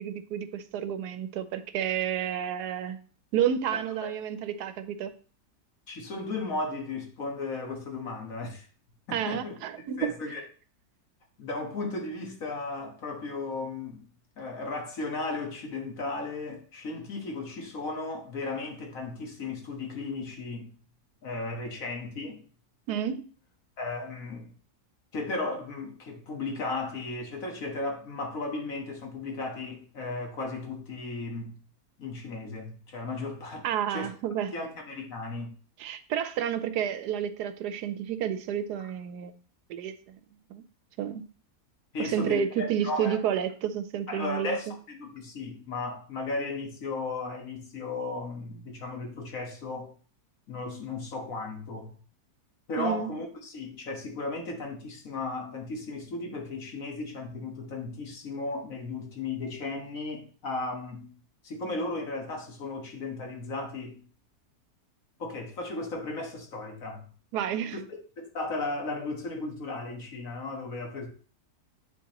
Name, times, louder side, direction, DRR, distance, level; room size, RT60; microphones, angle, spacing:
voice 1, 0.0-3.0 3.3-5.1 9.1-10.1 22.9-23.3 33.6-34.5 35.8-39.3 39.7-40.2 40.5-40.6 41.0-41.2 42.0-44.7 52.8-53.1 67.3-67.8, right 9 dB, 85° right, 1.2 m, -30 dB
voice 2, 5.9-8.7 9.1-9.6 10.0-10.4 11.4-14.1 14.4-20.7 21.2-22.4 23.8-24.5 25.1-31.6 32.0-34.1 34.5-35.6 41.9-43.2 44.1-49.9 50.5-52.0 52.7-61.1 61.4-64.1 65.2-67.1 68.2-71.1, left 3 dB, 60° left, 1.7 m, -35 dB
9.4 x 4.4 x 2.9 m
omnidirectional pair, 1.7 m